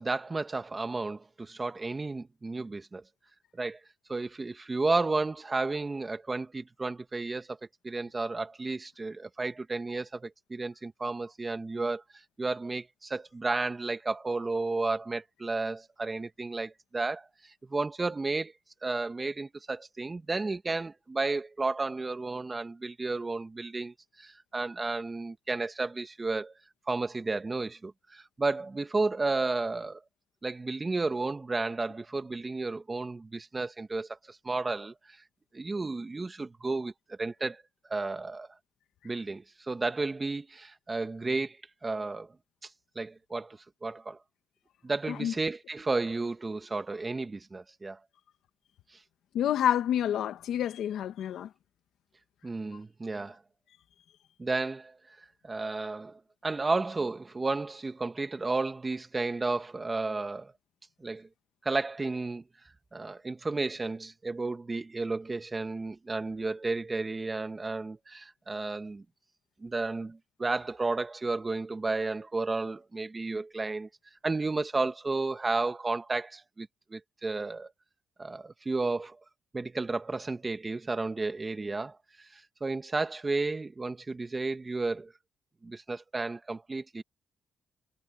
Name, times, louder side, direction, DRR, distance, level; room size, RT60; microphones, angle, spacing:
voice 1, 0.0-3.0 3.5-3.8 4.1-7.6 7.8-12.0 12.4-17.3 17.6-18.5 18.8-26.5 26.9-30.0 30.4-34.9 35.5-37.6 37.9-38.5 39.0-41.6 41.8-42.3 43.0-44.2 44.8-48.0 52.4-53.4 54.4-55.0 55.4-60.5 61.0-61.3 61.6-62.4 62.9-69.0 69.6-73.9 74.2-77.7 78.2-79.2 79.5-82.0 82.3-85.1 85.6-87.0, right 3 dB, 25° right, 2.3 m, -32 dB
voice 2, 49.3-51.5, left 10 dB, 75° left, 1.7 m, -28 dB
cardioid pair, 90°, 0 cm